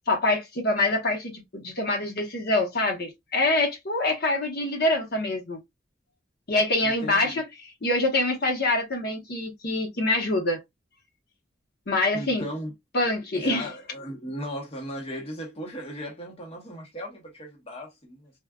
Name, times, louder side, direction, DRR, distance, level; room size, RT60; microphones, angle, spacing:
voice 1, 0.1-5.6 6.5-7.4 7.8-10.6 11.9-12.4 12.9-13.7, left 2 dB, 55° left, 0.9 m, -25 dB
voice 2, 6.8-7.4 12.1-12.7 13.4-18.3, equal, 30° left, 0.9 m, -37 dB
3.6 x 2.3 x 2.3 m
head